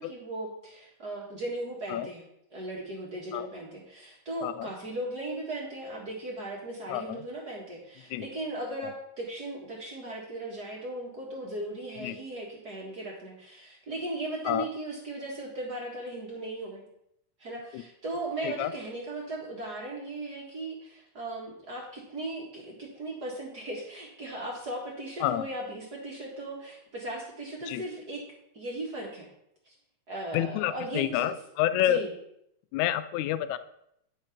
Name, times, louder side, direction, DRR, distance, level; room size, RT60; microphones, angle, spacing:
voice 1, 0.0-2.2 2.5-16.8 17.4-28.2 28.5-29.3 29.7-29.8 30.1-31.3 31.7-32.1, right 1 dB, 40° right, -2 dB, 1.7 m, -37 dB
voice 2, 6.9-7.2 8.1-8.3 8.8-8.9 12.0-12.2 14.5-14.7 17.7-17.8 18.4-18.7 25.2-25.5 27.7-27.8 30.3-32.0 32.7-33.6, left 12 dB, 80° left, 13 dB, 1.8 m, -29 dB
9.7 x 5.9 x 5.8 m, 0.77 s
omnidirectional pair, 3.7 m